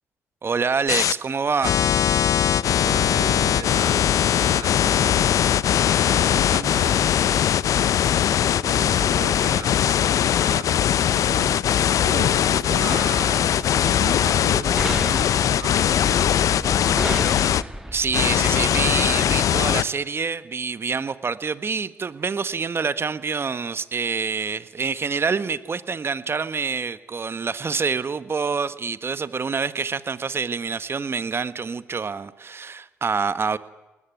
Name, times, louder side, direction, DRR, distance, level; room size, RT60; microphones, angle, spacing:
voice 1, 0.4-1.7 17.9-33.6, right 5 dB, 40° right, 1.5 m, -26 dB
sound 1, 0.9-1.1 1.6-17.6 18.1-19.8, left 10 dB, 65° left, 0.7 m, -20 dB
voice 2, 2.8-4.1 4.4-5.4 5.9-7.5 7.8-17.3, right 7 dB, 65° right, 4.1 m, -37 dB
sound 2, 12.9-19.0, right 1 dB, 5° right, 1.9 m, -34 dB
21.5 x 20.0 x 9.4 m
hypercardioid pair, 50°, 6 cm